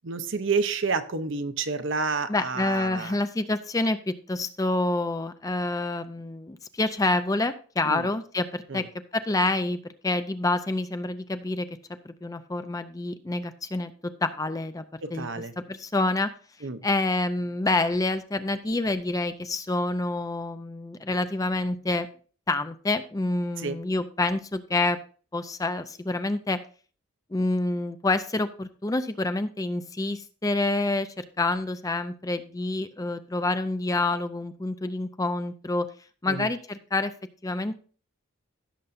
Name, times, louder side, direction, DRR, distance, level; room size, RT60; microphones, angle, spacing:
voice 1, 0.0-3.2 7.9-8.1 8.7-8.8 15.0-15.5 16.6-16.8 23.6-23.8 36.3-36.5, right 4 dB, 55° right, 11 dB, 0.7 m, -29 dB
voice 2, 2.3-8.8 9.1-11.7 12.0-14.8 15.1-15.3 15.6-16.3 16.8-22.1 22.5-25.0 25.3-26.6 27.3-35.9 36.2-37.1 37.4-37.8, left 2 dB, 15° left, 10 dB, 0.4 m, -27 dB
16.0 x 6.7 x 2.6 m, 0.41 s
head